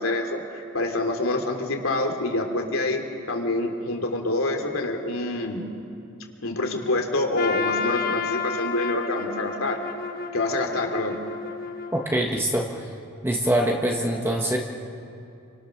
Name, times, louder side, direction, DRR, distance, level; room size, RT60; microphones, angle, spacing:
voice 1, 0.0-3.0 3.3-5.6 6.4-9.8 10.3-11.2, left 2 dB, 75° left, 3 dB, 3.1 m, -26 dB
Trumpet, 7.4-12.4, left 5 dB, 45° left, 1.5 m, -31 dB
voice 2, 11.9-12.9 13.2-14.6, right 1 dB, 10° right, 0 dB, 1.4 m, -24 dB
28.5 x 25.0 x 6.5 m, 2.6 s
head